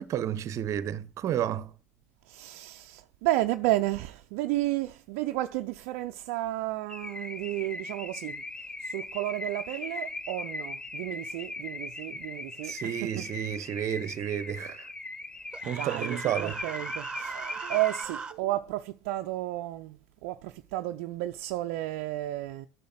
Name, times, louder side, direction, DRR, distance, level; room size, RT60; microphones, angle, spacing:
voice 1, 0.0-1.7 12.6-14.9 15.7-16.6, right 10 dB, 40° right, 0.9 m, -31 dB
voice 2, 2.3-8.4 8.8-12.7 13.0-13.2 15.6-22.7, right 16 dB, 60° right, 0.6 m, -32 dB
Car / Alarm, 6.9-18.0, left 2 dB, 10° left, 0.7 m, -39 dB
Human voice, 15.5-18.3, right 5 dB, 10° right, 1.4 m, -39 dB
10.5 x 6.6 x 7.7 m
hypercardioid pair, 75°, 8 cm